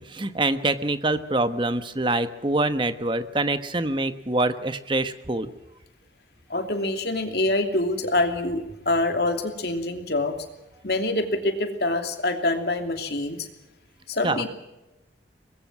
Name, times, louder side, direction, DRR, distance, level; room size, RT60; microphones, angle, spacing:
voice 1, 0.0-5.5 14.2-14.4, right 2 dB, 25° right, 11 dB, 1.2 m, -25 dB
voice 2, 6.5-10.4 10.8-13.5 14.1-14.5, left 2 dB, 60° left, 6 dB, 2.8 m, -25 dB
23.5 x 20.5 x 6.1 m, 0.98 s
head